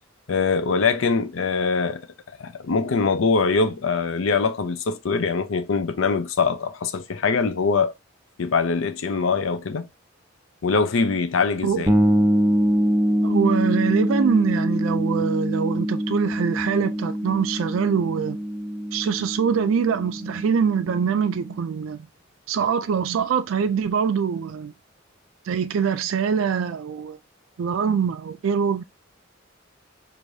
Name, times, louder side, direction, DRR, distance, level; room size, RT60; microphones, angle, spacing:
voice 1, 0.3-2.0 2.4-7.9 8.4-9.9 10.6-11.9, left 4 dB, 80° left, 0.5 m, -23 dB
voice 2, 11.6-12.1 13.2-18.4 18.9-22.1 22.5-24.7 25.5-27.2 27.6-28.8, right 6 dB, 85° right, 0.4 m, -24 dB
sound 1, 11.9-21.5, equal, 10° right, 0.5 m, -24 dB
4.7 x 2.6 x 2.6 m
head